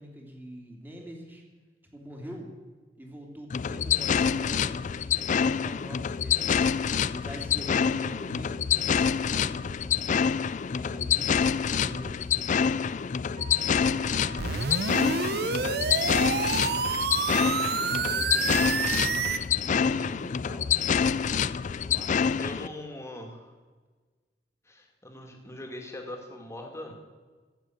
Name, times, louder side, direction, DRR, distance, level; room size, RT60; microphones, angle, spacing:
voice 1, 0.0-1.4 1.9-2.5 3.0-6.8 7.1-10.3 10.7-12.9 13.4-14.4 14.9-16.3 17.9-19.0 19.6-21.2 21.8-22.7, equal, 10° right, 1 dB, 2.8 m, -45 dB
sound 1, 3.5-22.7, left 7 dB, 45° left, 0.4 m, -27 dB
Wind instrument woodwind instrument, 13.4-17.8, right 6 dB, 35° right, 1.7 m, -50 dB
sound 2, 14.4-19.4, right 5 dB, 65° right, 0.8 m, -28 dB
voice 2, 22.4-23.5 24.7-26.9, left 1 dB, 15° left, 3 dB, 2.3 m, -41 dB
15.5 x 7.6 x 9.4 m, 1.4 s
head